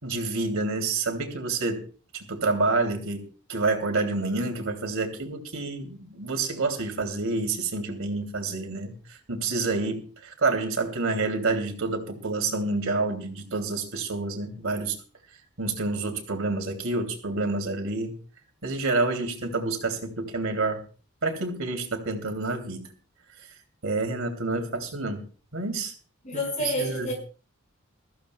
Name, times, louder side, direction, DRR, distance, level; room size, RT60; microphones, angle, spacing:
voice 1, 0.0-1.8 2.1-14.9 15.6-18.1 18.6-20.8 21.2-22.8 23.8-25.2 25.5-25.9 26.3-27.1, right 3 dB, 70° right, 2.9 m, -28 dB
voice 2, 26.2-27.1, left 1 dB, 35° left, 5.8 m, -29 dB
21.5 x 15.0 x 2.3 m
head